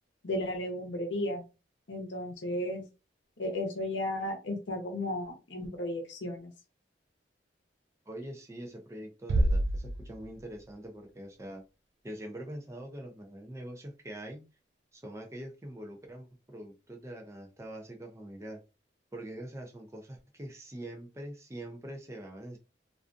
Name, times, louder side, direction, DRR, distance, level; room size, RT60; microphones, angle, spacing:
voice 1, 0.2-1.4 1.9-2.8 3.4-6.5, left 1 dB, 85° left, 3 dB, 0.7 m, -34 dB
voice 2, 8.1-11.6 12.0-14.5 14.9-18.6 19.1-22.6, right 1 dB, 15° right, 3 dB, 0.4 m, -44 dB
Bass drum, 9.3-10.7, right 1 dB, 85° right, 0.3 m, -28 dB
2.4 x 2.3 x 2.5 m, 0.30 s
head